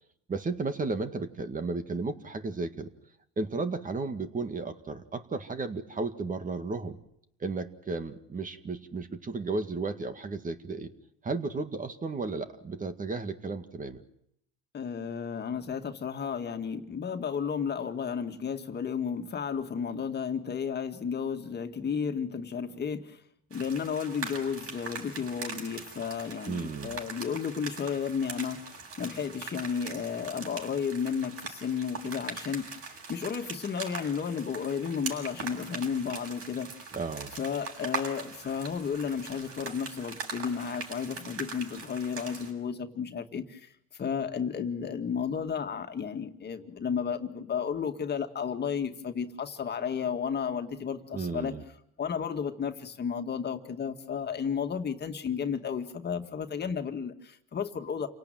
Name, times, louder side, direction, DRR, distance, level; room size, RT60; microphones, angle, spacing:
voice 1, 0.3-2.9 3.4-7.0 7.4-10.9 11.2-14.0 26.5-27.0 36.9-37.4 51.1-51.6, right 3 dB, 25° right, 8 dB, 2.1 m, -34 dB
voice 2, 14.7-23.2 23.5-36.7 37.4-51.5 52.0-58.1, left 7 dB, 35° left, 6 dB, 2.1 m, -33 dB
sound 1, 23.5-42.5, right 4 dB, 55° right, 7.6 m, -41 dB
28.5 x 18.0 x 9.3 m, 0.76 s
supercardioid pair, 100°, 29 cm